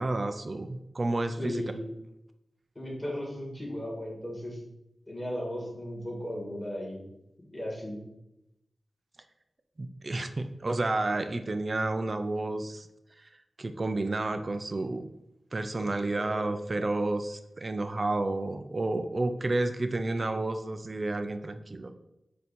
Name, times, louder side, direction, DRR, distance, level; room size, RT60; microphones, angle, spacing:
voice 1, 0.0-1.6 9.8-12.9 13.2-13.3 13.6-15.1 15.5-21.9, right 2 dB, 40° right, 9 dB, 0.4 m, -31 dB
voice 2, 1.4-1.8 2.8-4.6 5.1-7.0 7.5-8.0 15.8-15.9 16.3-16.9, equal, 15° left, -3 dB, 2.3 m, -36 dB
8.1 x 2.7 x 4.3 m, 0.86 s
wide cardioid pair, 95°, 0 cm